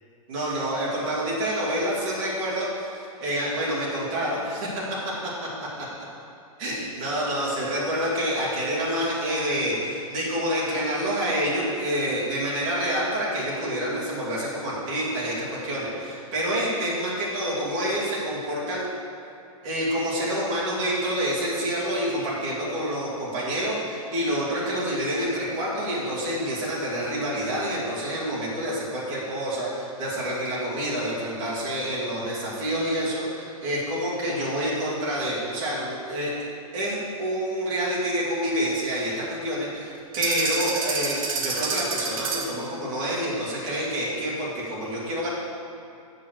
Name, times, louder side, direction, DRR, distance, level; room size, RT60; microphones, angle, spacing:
voice 1, 0.3-5.1 5.8-5.9 6.6-18.9 19.6-36.5 36.7-45.3, equal, 30° right, -6 dB, 2.2 m, -28 dB
sound 1, 40.1-42.6, right 4 dB, 70° right, 1.6 m, -28 dB
7.5 x 6.1 x 6.5 m, 2.6 s
supercardioid pair, 175°, 19 cm